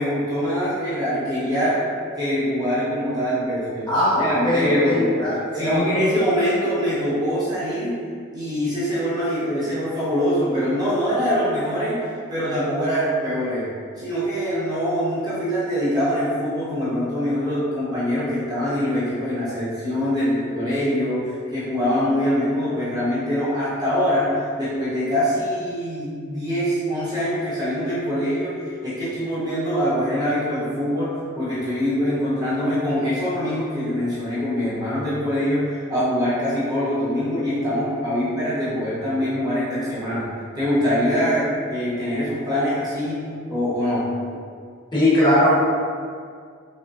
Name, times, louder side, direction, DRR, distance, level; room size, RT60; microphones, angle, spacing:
voice 1, 0.0-1.8 2.2-5.3 5.5-8.0 8.3-13.7 14.0-44.1, equal, 20° right, -12 dB, 0.9 m, -24 dB
voice 2, 3.9-6.0 44.9-45.6, left 1 dB, 20° left, -10 dB, 1.2 m, -20 dB
5.3 x 2.1 x 2.6 m, 2.1 s
head